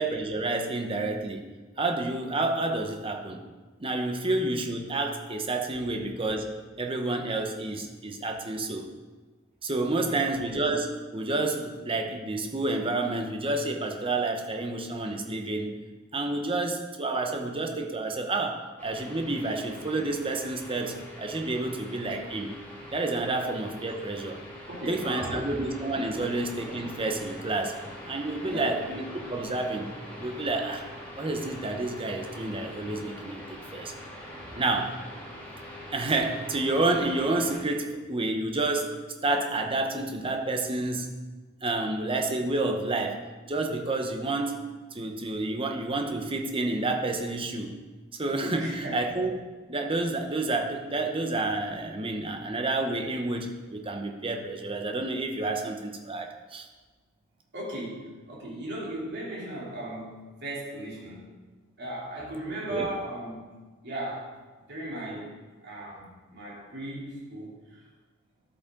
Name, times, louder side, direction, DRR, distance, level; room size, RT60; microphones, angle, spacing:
voice 1, 0.0-1.4 1.8-3.4 3.8-8.9 9.6-15.7 16.1-22.5 22.9-24.4 24.9-27.8 28.0-29.9 30.2-30.8 31.2-33.4 33.7-33.9 34.5-35.0 35.9-41.1 41.6-44.6 44.9-47.7 48.2-49.3 49.7-56.7 62.7-62.9, right 2 dB, 25° right, 4 dB, 0.9 m, -29 dB
voice 2, 9.8-10.3 24.7-25.6 26.1-26.3 28.4-28.8 48.6-49.0 57.5-61.3 61.8-63.5 63.8-64.3 64.7-65.3 65.6-67.8, right 1 dB, 55° right, -5 dB, 3.1 m, -37 dB
sound 1, 18.8-37.6, left 1 dB, 10° left, 2.8 m, -43 dB
11.5 x 8.5 x 3.8 m, 1.3 s
head